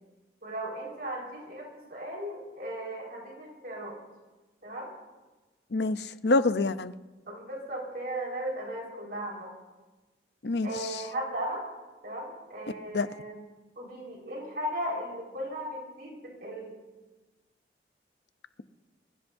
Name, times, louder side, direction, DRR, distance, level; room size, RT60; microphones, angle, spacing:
voice 1, 0.4-4.0 4.6-4.9 7.3-9.5 10.6-11.6 12.0-13.4 13.7-16.8, right 1 dB, 55° right, -2 dB, 4.7 m, -36 dB
voice 2, 5.7-6.9 10.4-11.0 12.9-13.1, left 3 dB, 70° left, 11 dB, 0.7 m, -27 dB
24.0 x 22.0 x 2.7 m, 1.2 s
head